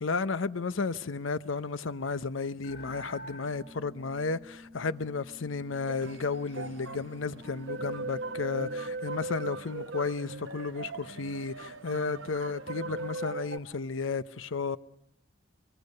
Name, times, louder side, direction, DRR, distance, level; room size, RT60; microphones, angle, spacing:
voice 1, 0.0-14.8, left 4 dB, 85° left, 0.8 m, -33 dB
sound 1, 2.6-9.0, left 1 dB, 55° left, 3.7 m, -50 dB
sound 2, 5.8-13.6, right 2 dB, 75° right, 1.1 m, -39 dB
24.0 x 23.0 x 6.6 m
head